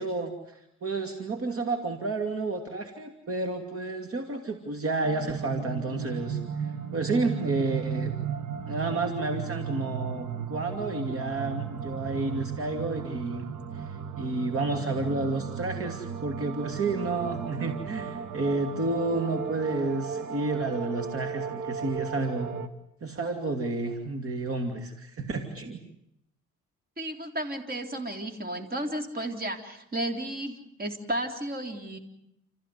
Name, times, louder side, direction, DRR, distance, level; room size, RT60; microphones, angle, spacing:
voice 1, 0.0-8.2 8.7-22.5 23.0-25.8, right 3 dB, 50° right, 5 dB, 2.8 m, -31 dB
sound 1, 5.0-22.7, right 7 dB, 65° right, 2.0 m, -35 dB
voice 2, 27.0-32.0, right 1 dB, 30° right, 6 dB, 3.7 m, -33 dB
29.5 x 15.0 x 9.7 m, 0.77 s
cardioid pair, 90°, 30 cm